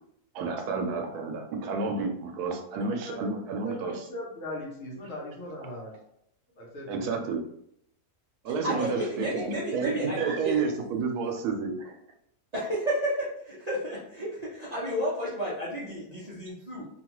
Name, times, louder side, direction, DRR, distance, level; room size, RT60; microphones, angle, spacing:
voice 1, 0.3-4.1 6.9-7.4 8.4-12.0, right 4 dB, 85° right, 3 dB, 1.1 m, -30 dB
voice 2, 3.6-6.0 6.6-7.1, left 1 dB, 60° left, -3 dB, 1.1 m, -39 dB
voice 3, 8.5-10.6 12.5-16.8, equal, 50° right, -8 dB, 0.5 m, -32 dB
2.8 x 2.2 x 2.9 m, 0.73 s
omnidirectional pair, 1.6 m